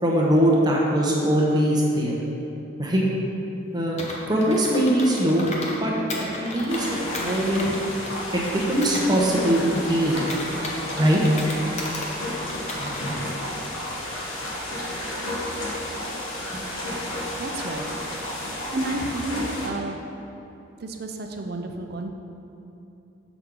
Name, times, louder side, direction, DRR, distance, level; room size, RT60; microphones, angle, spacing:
voice 1, 0.0-2.1 2.8-3.0 3.7-4.0 4.3-5.5 5.8-5.9 6.4-6.9 7.1-7.8 8.3-10.2 11.0-11.2, right 1 dB, 20° right, -3 dB, 0.8 m, -21 dB
Computer keyboard, 4.0-5.8 6.1-9.0 9.4-12.1 12.5-13.2, left 1 dB, 35° left, 0.8 m, -35 dB
sound 1, 6.7-19.7, left 1 dB, 80° left, 1.2 m, -32 dB
voice 2, 17.4-18.0 18.7-19.9 20.8-22.1, right 2 dB, 50° right, 4 dB, 0.5 m, -31 dB
7.1 x 5.9 x 3.8 m, 2.9 s
head